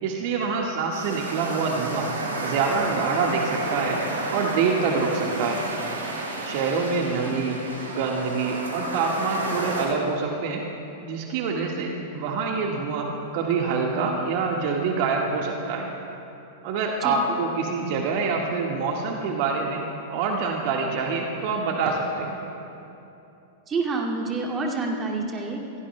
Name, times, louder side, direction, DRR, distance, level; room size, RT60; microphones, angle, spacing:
voice 1, 0.0-2.1 2.4-4.0 4.3-5.6 6.4-7.6 7.8-10.6 11.0-15.9 16.6-19.8 20.1-22.4, right 4 dB, 55° right, 0 dB, 1.6 m, -26 dB
sound 1, 0.9-9.8, right 2 dB, 85° right, 4.2 m, -31 dB
voice 2, 23.7-25.8, right 3 dB, 25° right, -2 dB, 2.3 m, -28 dB
26.5 x 17.0 x 2.2 m, 2.9 s
hypercardioid pair, 105°, 0 cm